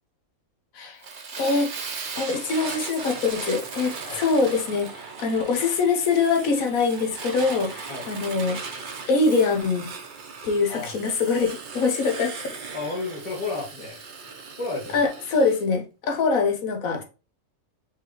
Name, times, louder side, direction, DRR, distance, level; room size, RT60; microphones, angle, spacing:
Fire, 1.0-15.6, right 5 dB, 45° right, 0.7 m, -38 dB
voice 1, 1.4-1.7 2.2-8.6 9.1-9.8 10.4-12.5 14.9-17.0, left 4 dB, 75° left, 1.3 m, -23 dB
voice 2, 12.7-14.0 14.6-15.0 16.9-17.0, left 3 dB, 25° left, 1.6 m, -32 dB
5.3 x 3.4 x 3.0 m
omnidirectional pair, 1.5 m